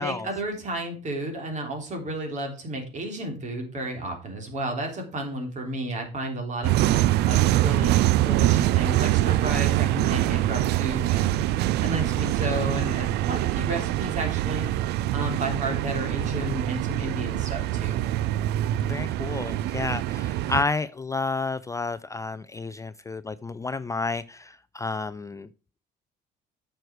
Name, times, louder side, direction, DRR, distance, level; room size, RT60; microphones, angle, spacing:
voice 1, 0.0-6.8 7.3-14.7 15.1-18.0, right 1 dB, 45° right, 3 dB, 3.6 m, -32 dB
sound 1, 6.6-20.6, right 14 dB, 80° right, 0.4 m, -24 dB
voice 2, 18.8-25.5, left 3 dB, 20° left, 15 dB, 0.4 m, -31 dB
9.1 x 6.5 x 4.7 m, 0.36 s
cardioid pair, 110°, 17 cm